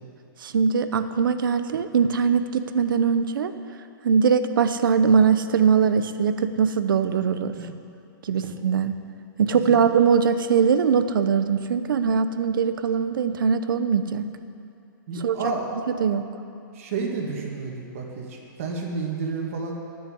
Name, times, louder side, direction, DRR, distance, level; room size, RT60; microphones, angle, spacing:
voice 1, 0.4-3.5 4.0-7.6 8.2-8.9 9.4-14.2 15.2-15.4 15.9-16.2, right 6 dB, 75° right, 10 dB, 0.8 m, -21 dB
voice 2, 15.1-15.7 16.8-19.7, right 4 dB, 40° right, 0 dB, 1.9 m, -30 dB
9.8 x 8.8 x 9.9 m, 2.7 s
hypercardioid pair, 175°, 11 cm